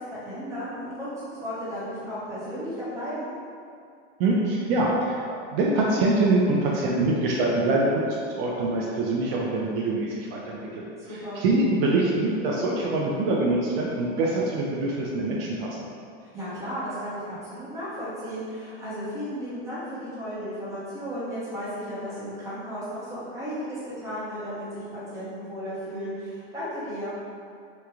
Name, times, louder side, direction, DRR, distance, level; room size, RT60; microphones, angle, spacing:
voice 1, 0.0-3.3 11.0-11.5 16.2-27.2, equal, 10° right, -11 dB, 0.8 m, -34 dB
voice 2, 4.2-8.0 8.3-10.6 11.3-15.7, right 2 dB, 60° right, -3 dB, 0.5 m, -24 dB
3.0 x 2.1 x 2.4 m, 2.3 s
supercardioid pair, 130°, 34 cm